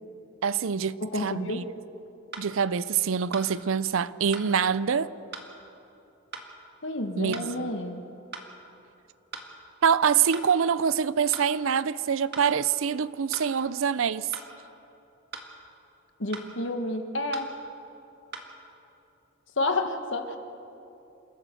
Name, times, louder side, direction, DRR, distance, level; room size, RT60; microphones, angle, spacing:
voice 1, 0.4-1.6 2.4-5.1 7.2-7.7 9.8-14.3, right 7 dB, 75° right, 0.5 m, -25 dB
voice 2, 1.0-1.7 6.8-8.0 16.2-17.5 19.6-20.4, left 2 dB, 60° left, 1.5 m, -30 dB
sound 1, 2.3-2.5 3.3-3.5 4.3-4.5 5.3-5.5 6.3-6.5 7.3-7.5 8.3-8.5 9.3-9.5 10.3-10.5 11.3-11.5 12.3-12.5 13.3-13.5 14.3-14.5 15.3-15.5 16.3-16.5 17.3-17.5 18.3-18.5, right 4 dB, 50° right, 1.9 m, -39 dB
28.0 x 13.5 x 7.7 m
head